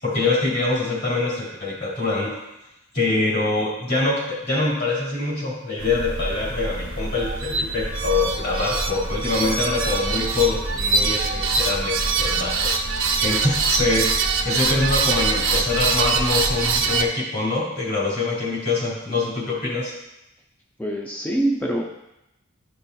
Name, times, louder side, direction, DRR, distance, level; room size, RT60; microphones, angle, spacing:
voice 1, 0.0-2.4 2.9-12.7 13.2-14.1 14.4-19.9, left 3 dB, 55° left, -5 dB, 2.8 m, -24 dB
sound 1, 5.8-17.1, right 4 dB, 65° right, 0.7 m, -24 dB
voice 2, 20.8-21.9, right 1 dB, 10° left, 0 dB, 0.4 m, -24 dB
11.5 x 5.4 x 2.2 m, 0.89 s
head